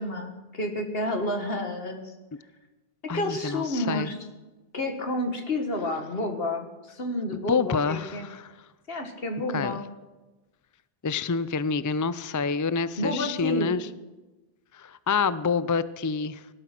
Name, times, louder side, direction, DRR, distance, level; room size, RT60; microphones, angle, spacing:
voice 1, 0.0-2.1 3.0-4.2 4.7-8.3 8.9-9.8 13.0-13.7, left 1 dB, 70° left, 5 dB, 2.0 m, -30 dB
voice 2, 3.1-4.1 7.5-8.5 9.5-9.8 11.0-13.9 14.7-16.4, left 5 dB, 30° left, 15 dB, 0.3 m, -27 dB
17.5 x 12.0 x 6.0 m, 1.1 s
omnidirectional pair, 1.0 m